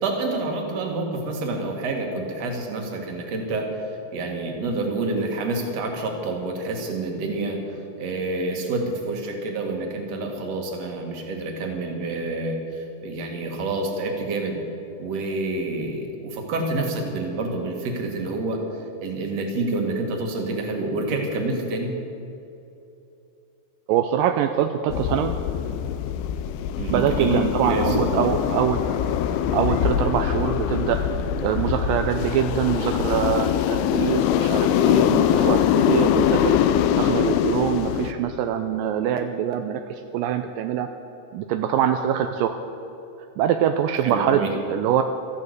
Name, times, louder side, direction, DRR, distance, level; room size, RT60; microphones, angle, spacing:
voice 1, 0.0-3.8 4.1-14.6 15.0-21.9 26.8-27.4 27.7-28.2 44.0-44.5, right 2 dB, 50° right, 2 dB, 2.7 m, -28 dB
voice 2, 23.9-25.3 26.9-28.9 29.5-31.0 31.4-36.6 37.0-40.9 41.3-42.6 43.4-45.0, right 9 dB, 80° right, 7 dB, 2.1 m, -24 dB
sound 1, 24.9-38.1, left 9 dB, 85° left, 2.7 m, -23 dB
13.5 x 12.0 x 8.2 m, 2.8 s
omnidirectional pair, 4.5 m